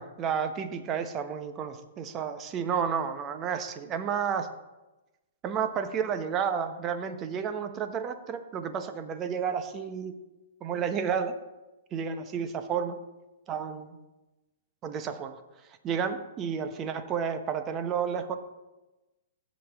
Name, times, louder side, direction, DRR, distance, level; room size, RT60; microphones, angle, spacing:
voice 1, 0.0-4.5 5.4-10.1 10.6-11.3 11.9-13.0 13.5-14.0 14.8-15.3 15.8-18.4, right 7 dB, 30° right, 9 dB, 1.0 m, -31 dB
16.0 x 6.3 x 3.6 m, 1.1 s
hypercardioid pair, 125°, 0 cm